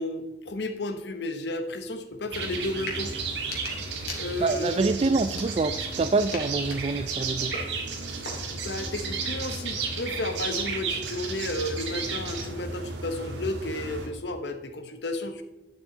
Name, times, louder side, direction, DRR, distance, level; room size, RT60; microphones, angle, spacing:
voice 1, 0.0-3.1 4.2-4.9 8.5-15.4, left 1 dB, 75° left, 8 dB, 1.1 m, -33 dB
sound 1, 2.3-14.1, right 4 dB, 85° right, 1.7 m, -33 dB
sound 2, 2.8-3.0 3.3-4.7 5.2-5.9 6.3-8.7, left 3 dB, 55° left, 2.4 m, -41 dB
voice 2, 4.4-7.5, right 3 dB, 35° right, 12 dB, 0.3 m, -26 dB
11.0 x 7.3 x 3.9 m, 1.0 s
head